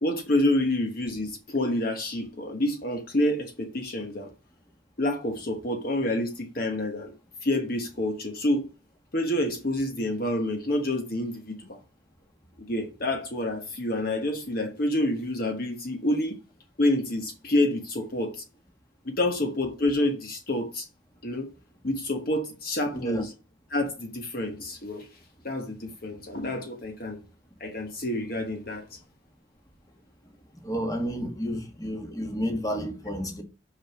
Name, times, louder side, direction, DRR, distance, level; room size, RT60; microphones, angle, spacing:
voice 1, 0.0-4.3 5.0-7.1 7.4-8.7 9.1-11.8 12.6-16.4 16.8-18.4 19.0-20.9 21.2-21.5 21.8-23.3 23.7-25.1 25.4-27.2 27.6-29.0, left 1 dB, 50° left, 1.2 m, -28 dB
voice 2, 30.6-33.4, equal, 20° left, 1.6 m, -31 dB
6.2 x 6.0 x 6.0 m
head